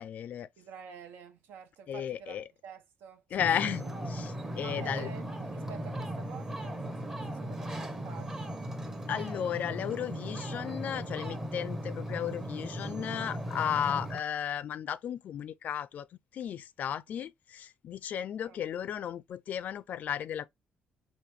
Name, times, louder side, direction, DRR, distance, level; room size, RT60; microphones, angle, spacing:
voice 1, 0.0-0.5 1.9-2.4 3.3-5.1 9.1-16.1 16.3-20.5, left 9 dB, 50° left, 0.4 m, -34 dB
voice 2, 0.6-3.2 3.6-3.8 4.6-8.5 13.8-14.0 18.4-18.6, right 7 dB, 80° right, 1.1 m, -49 dB
Ocean, 3.4-14.2, right 1 dB, 15° right, 0.8 m, -37 dB
5.0 x 2.7 x 3.2 m
cardioid pair, 160°, 3 cm